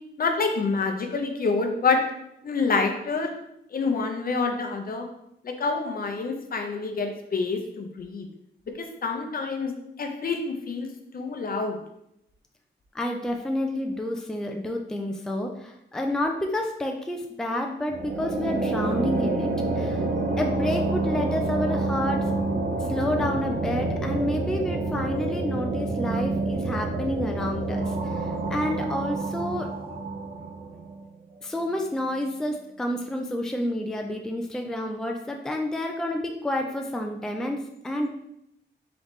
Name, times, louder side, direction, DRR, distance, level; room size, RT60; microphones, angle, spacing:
voice 1, 0.2-2.0 2.4-3.3 3.7-5.1 5.4-8.3 8.8-9.7 10.0-10.9 11.1-11.8, left 4 dB, 50° left, 4 dB, 0.6 m, -27 dB
voice 2, 12.9-20.1 20.4-22.3 22.9-29.7 31.4-38.1, left 1 dB, 5° left, 2 dB, 0.4 m, -29 dB
sound 1, 17.9-31.0, right 2 dB, 50° right, 0.6 m, -28 dB
3.9 x 3.5 x 3.1 m, 0.79 s
cardioid pair, 95°, 19 cm